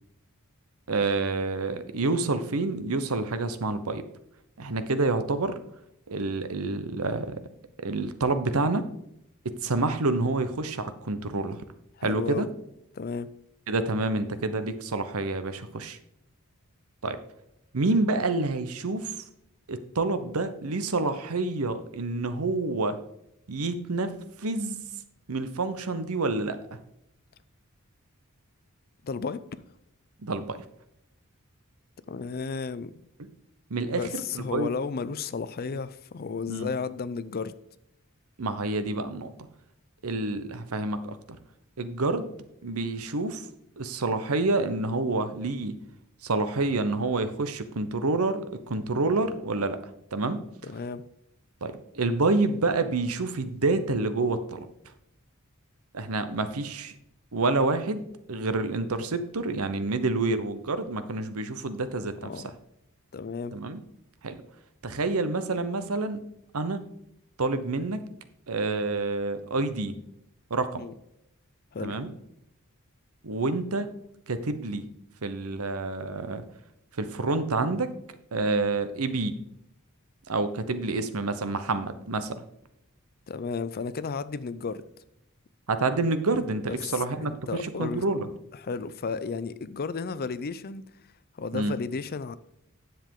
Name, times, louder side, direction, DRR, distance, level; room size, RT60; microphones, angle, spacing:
voice 1, 0.9-4.0 4.6-5.6 6.1-7.3 7.8-8.9 9.4-11.6 12.0-12.5 13.7-16.0 17.0-17.2 17.7-19.1 19.7-23.0 23.5-24.1 24.4-24.8 25.3-26.6 30.2-30.6 33.7-34.7 36.5-36.7 38.4-39.3 40.0-41.2 41.8-42.3 42.6-43.4 43.8-45.8 46.2-49.8 50.1-50.4 51.6-54.7 55.9-56.9 57.3-62.3 63.5-63.8 64.2-64.4 64.8-66.2 66.5-66.8 67.4-68.0 68.5-70.0 70.5-70.8 71.8-72.1 73.2-73.9 74.3-74.8 75.2-76.4 77.0-77.9 78.3-79.4 80.3-82.4 85.7-88.3 91.5-91.8, right 3 dB, 80° right, 0.9 m, -28 dB
voice 2, 12.0-12.5 12.9-13.3 29.0-29.4 32.1-32.9 33.9-37.5 50.6-51.0 62.2-62.5 63.1-63.6 70.8-70.9 71.7-72.0 83.3-84.8 86.7-88.0 88.5-90.9 91.4-92.4, left 5 dB, 45° left, 0.5 m, -33 dB
10.5 x 7.4 x 3.8 m
head